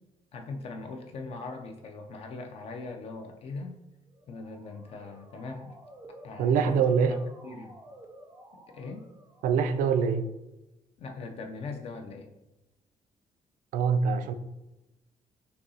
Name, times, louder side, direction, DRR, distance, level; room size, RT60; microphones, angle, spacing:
voice 1, 0.3-3.8 4.3-5.8 6.2-7.2 7.4-7.8 8.5-9.1 11.0-12.3, left 3 dB, 50° left, 4 dB, 0.4 m, -40 dB
Motor vehicle (road) / Siren, 4.1-10.0, right 1 dB, 15° right, 0.4 m, -52 dB
voice 2, 6.4-7.1 9.4-10.3 13.7-14.3, right 6 dB, 90° right, 9 dB, 0.4 m, -24 dB
6.4 x 2.7 x 2.7 m, 0.96 s
cardioid pair, 155°, 13 cm